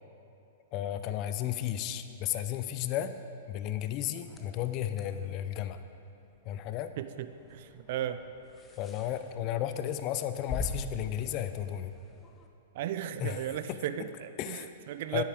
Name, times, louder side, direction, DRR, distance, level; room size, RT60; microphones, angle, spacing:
voice 1, 0.7-3.1 3.5-5.8 6.5-6.9 8.8-11.9 13.2-13.4 14.4-14.7 15.1-15.2, left 11 dB, 40° left, 10 dB, 0.5 m, -33 dB
sound 1, 4.2-12.5, left 2 dB, 20° left, 0.9 m, -45 dB
voice 2, 7.0-8.2 12.7-15.2, right 11 dB, 55° right, 11 dB, 0.5 m, -36 dB
9.9 x 8.4 x 4.9 m, 2.8 s
hypercardioid pair, 110°, 0 cm